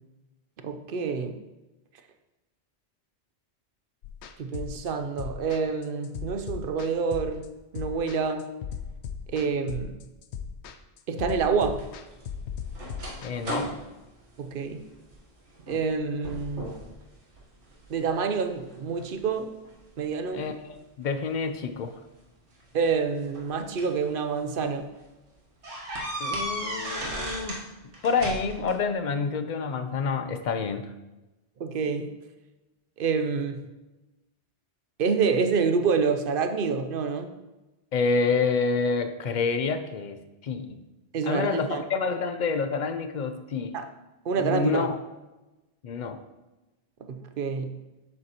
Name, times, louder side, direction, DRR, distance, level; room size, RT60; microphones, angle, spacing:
voice 1, 0.6-1.4 4.4-7.4 7.7-8.5 9.3-10.0 11.1-11.8 14.4-14.8 15.7-16.7 17.9-19.5 20.0-20.4 22.7-24.9 31.6-32.1 33.0-33.6 35.0-37.3 41.1-41.8 43.7-43.8 44.3-44.9 47.0-47.8, right 5 dB, 60° right, 8 dB, 0.7 m, -27 dB
sound 1, 4.0-13.3, left 7 dB, 80° left, 0.9 m, -38 dB
sound 2, 11.7-15.2 15.6-15.9 16.2-16.9 17.3-18.1 18.7-20.1 21.3-21.4 22.6-24.0 24.5-24.7 25.0-25.1 25.6-27.7 27.9-28.8, right 1 dB, 90° right, 1.6 m, -36 dB
voice 2, 13.2-13.7 20.3-22.0 26.2-27.6 28.0-30.9 37.9-40.8 41.2-43.7 44.4-45.0 45.8-46.2, left 4 dB, 55° left, 9 dB, 0.5 m, -28 dB
7.7 x 7.6 x 2.9 m, 1.1 s
omnidirectional pair, 1.2 m